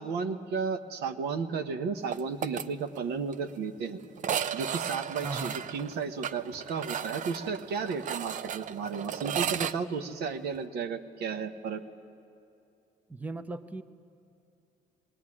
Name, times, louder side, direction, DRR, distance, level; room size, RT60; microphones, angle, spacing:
voice 1, 0.0-4.0 4.5-11.8, right 5 dB, 75° right, 9 dB, 1.1 m, -33 dB
sound 1, 2.1-2.7 3.0-3.1 3.3-3.4 4.2-9.7, right 9 dB, 50° right, 0.6 m, -34 dB
voice 2, 5.2-5.7 13.1-13.8, right 3 dB, 10° right, 11 dB, 0.6 m, -37 dB
20.5 x 17.0 x 9.8 m, 2.6 s
cardioid pair, 110°, 17 cm